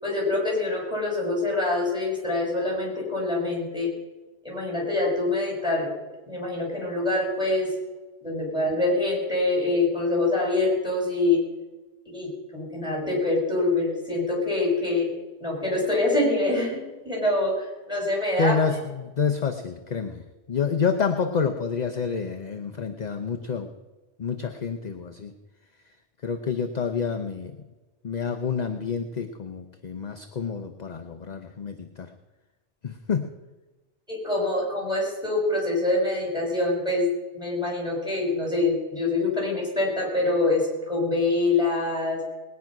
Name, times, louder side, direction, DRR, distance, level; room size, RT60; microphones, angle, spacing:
voice 1, 0.0-3.9 4.4-5.9 6.3-7.7 8.2-11.4 12.1-15.1 15.4-16.8 17.0-18.5 34.1-37.1 37.3-42.2, left 2 dB, 5° right, -2 dB, 5.7 m, -25 dB
voice 2, 18.4-23.7 24.2-25.3 26.2-27.5 28.0-32.1 32.8-33.3, left 5 dB, 45° left, 7 dB, 0.8 m, -28 dB
20.0 x 9.5 x 6.0 m, 1.2 s
omnidirectional pair, 1.1 m